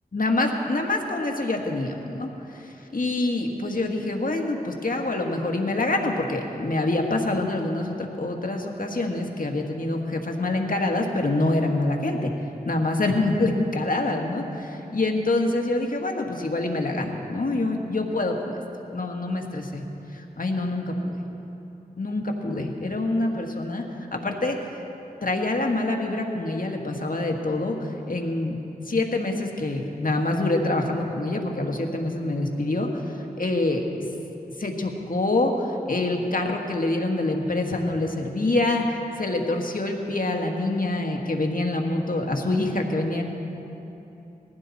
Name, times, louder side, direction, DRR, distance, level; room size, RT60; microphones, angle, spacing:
voice 1, 0.1-12.3 12.7-18.6 18.9-19.8 20.1-21.2 22.0-24.8 25.2-28.6 28.9-33.8 34.6-43.2, left 2 dB, 60° left, 2 dB, 1.7 m, -26 dB
20.0 x 15.0 x 4.2 m, 3.0 s
wide cardioid pair, 45°, 16 cm